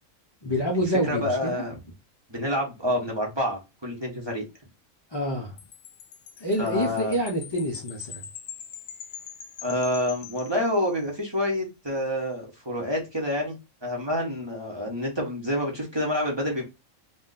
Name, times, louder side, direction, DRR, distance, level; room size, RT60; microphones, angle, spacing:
voice 1, 0.4-1.7 5.1-5.6 6.4-8.3, equal, 40° left, 0.3 m, -27 dB
voice 2, 1.1-1.7 2.3-4.4 6.6-7.2 9.6-13.6 13.8-16.6, left 1 dB, 25° right, 0.7 m, -28 dB
Wind chime, 5.6-11.3, left 8 dB, 70° left, 0.8 m, -43 dB
2.4 x 2.2 x 3.8 m
omnidirectional pair, 1.3 m